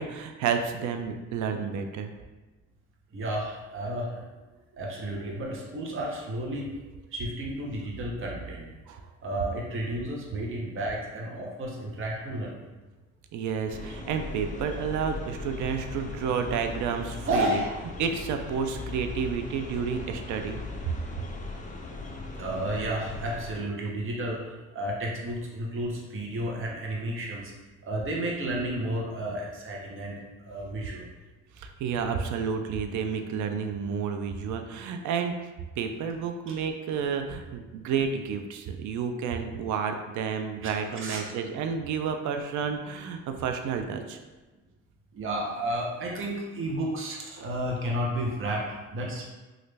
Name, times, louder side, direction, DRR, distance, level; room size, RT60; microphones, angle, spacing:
voice 1, 0.0-2.1 8.9-9.0 13.3-17.6 18.0-21.0 31.6-35.4 35.8-44.2, right 6 dB, 75° right, 6 dB, 0.5 m, -30 dB
voice 2, 3.1-4.3 4.8-6.8 7.1-8.7 9.2-12.6 17.3-17.8 22.4-27.5 27.9-30.2 30.4-31.1 40.6-41.2 45.1-49.4, right 1 dB, 45° right, -2 dB, 0.8 m, -32 dB
sound 1, 13.7-23.6, left 3 dB, 25° left, 0.5 m, -39 dB
3.1 x 2.4 x 3.2 m, 1.2 s
cardioid pair, 90°, 30 cm